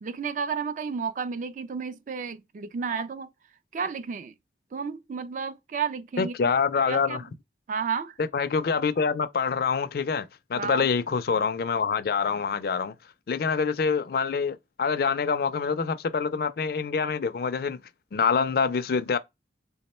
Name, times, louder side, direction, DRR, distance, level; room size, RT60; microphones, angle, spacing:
voice 1, 0.0-3.3 3.7-4.3 4.7-6.5 6.9-7.3 7.7-8.1 10.5-10.9, right 6 dB, 45° right, 0.3 m, -32 dB
voice 2, 6.2-7.2 8.2-12.9 13.3-17.8 18.1-19.2, left 5 dB, 55° left, 0.4 m, -26 dB
3.5 x 2.1 x 4.1 m
head